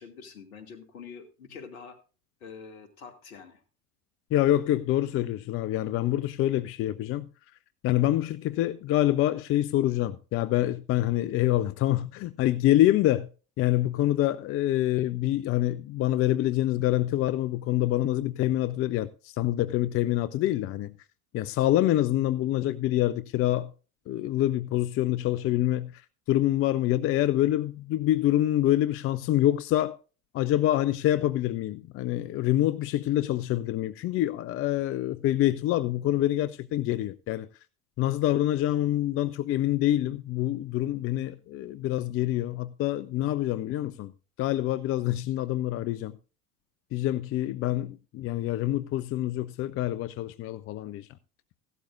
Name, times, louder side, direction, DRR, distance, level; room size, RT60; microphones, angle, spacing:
voice 1, 0.0-2.0 2.4-3.6, left 6 dB, 70° left, 2.4 m, -45 dB
voice 2, 4.3-7.3 7.8-13.3 13.6-19.1 19.4-20.9 21.3-23.7 24.1-25.9 26.3-30.0 30.3-37.5 38.0-44.1 44.4-46.2 46.9-51.1, left 14 dB, 30° left, 0.6 m, -26 dB
15.5 x 12.5 x 2.5 m
figure-of-eight pair, 75°, 44 cm